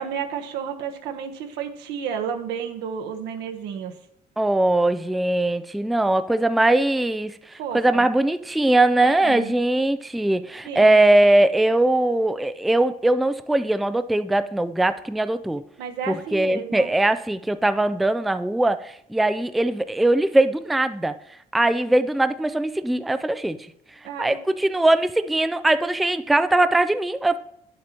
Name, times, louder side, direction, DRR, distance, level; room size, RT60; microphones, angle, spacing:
voice 1, 0.0-3.9 7.6-8.0 9.0-9.5 10.6-11.0 15.8-16.9 24.0-24.4, right 7 dB, 90° right, 1.1 m, -32 dB
voice 2, 4.4-15.6 16.1-21.1 21.5-23.7 24.2-27.4, right 2 dB, ahead, 0.3 m, -21 dB
9.6 x 7.5 x 3.0 m
cardioid pair, 110°, 17 cm